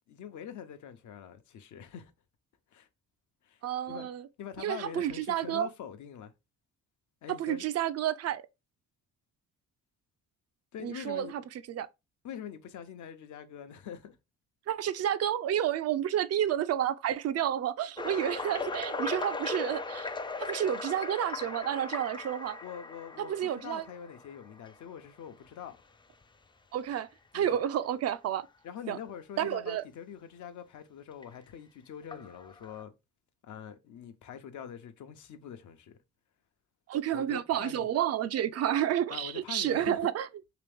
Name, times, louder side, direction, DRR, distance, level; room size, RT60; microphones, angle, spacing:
voice 1, 0.1-2.1 2.7-2.9 3.4-3.6 3.9-4.1 4.4-6.3 7.2-7.6 10.7-11.3 12.2-14.2 22.6-25.8 27.3-27.6 28.6-32.9 33.4-36.0 37.1-37.9 39.1-40.1, left 8 dB, 75° left, 0.8 m, -44 dB
voice 2, 3.6-4.3 4.6-5.7 7.3-8.4 10.8-11.4 11.7-11.9 14.7-20.1 20.4-22.6 23.2-23.8 26.7-27.1 27.3-28.5 28.9-29.0 29.4-29.8 36.9-40.3, right 10 dB, 55° right, 0.4 m, -30 dB
sound 1, 18.0-24.8 25.5-25.7 26.2-26.3 26.9-27.0 28.3-28.4 31.2-31.3 32.1-32.8, left 3 dB, 15° left, 0.4 m, -38 dB
3.3 x 3.0 x 3.4 m
cardioid pair, 90°, 30 cm